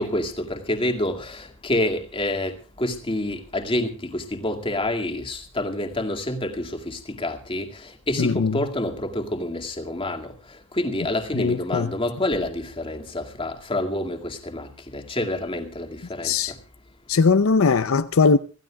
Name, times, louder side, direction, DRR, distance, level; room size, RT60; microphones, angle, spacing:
voice 1, 0.0-10.3 10.7-16.6, left 1 dB, 25° left, 2.1 m, -28 dB
voice 2, 8.2-8.6 11.3-11.9 16.2-16.5 17.1-18.4, left 4 dB, 70° left, 0.6 m, -20 dB
26.0 x 15.0 x 2.3 m
head